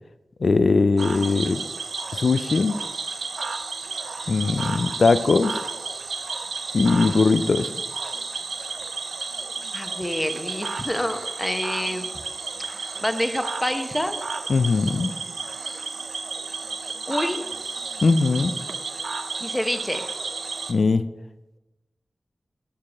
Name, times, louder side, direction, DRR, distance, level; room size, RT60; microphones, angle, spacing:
voice 1, 0.4-1.6 2.1-2.8 4.3-5.6 6.7-7.7 14.5-15.1 18.0-18.5 20.7-21.1, left 3 dB, 70° left, 13 dB, 0.3 m, -20 dB
Cricket / Frog, 1.0-20.7, right 4 dB, 85° right, 0.5 m, -32 dB
voice 2, 9.7-12.0 12.6-14.2 17.1-17.4 19.4-20.0, equal, 10° left, 7 dB, 0.8 m, -27 dB
7.4 x 4.7 x 5.9 m, 1.0 s
cardioid pair, 55°, 0 cm